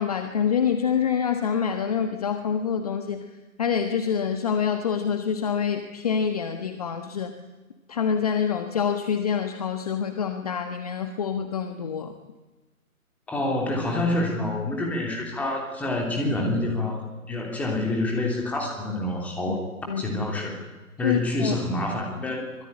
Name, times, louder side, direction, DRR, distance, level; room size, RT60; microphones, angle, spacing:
voice 1, 0.0-3.2 3.6-7.3 7.9-12.1 19.5-19.6 19.9-20.2 21.0-21.5, left 7 dB, 25° left, 7 dB, 1.4 m, -26 dB
voice 2, 13.3-19.7 20.0-20.6 21.0-22.5, left 2 dB, 5° left, 0 dB, 3.1 m, -27 dB
25.0 x 22.0 x 10.0 m, 1.2 s
figure-of-eight pair, 160°, 44 cm